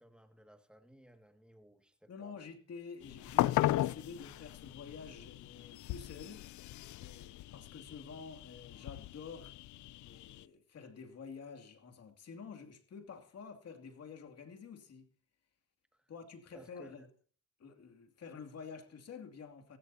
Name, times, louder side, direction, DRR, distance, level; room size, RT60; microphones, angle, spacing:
voice 1, 0.0-2.4 15.9-16.1 16.5-17.1, equal, 5° right, 2.1 m, -59 dB
voice 2, 2.1-6.5 7.0-9.5 10.0-15.1 16.1-17.0 17.6-19.8, left 5 dB, 55° left, 2.6 m, -49 dB
sound 1, 3.0-10.4, left 15 dB, 75° left, 0.5 m, -37 dB
16.5 x 16.0 x 2.8 m
cardioid pair, 90°, 30 cm